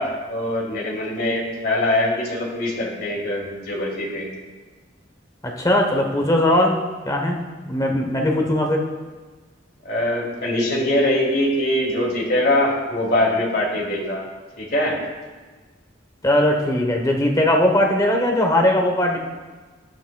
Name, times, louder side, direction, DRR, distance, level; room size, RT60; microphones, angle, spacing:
voice 1, 0.0-4.3 9.8-14.2 14.6-15.0, left 1 dB, 55° left, -2 dB, 2.3 m, -22 dB
voice 2, 5.4-6.8 7.0-7.4 7.6-8.8 16.2-19.2, left 1 dB, 20° left, 1 dB, 1.0 m, -19 dB
12.5 x 9.3 x 2.3 m, 1.3 s
head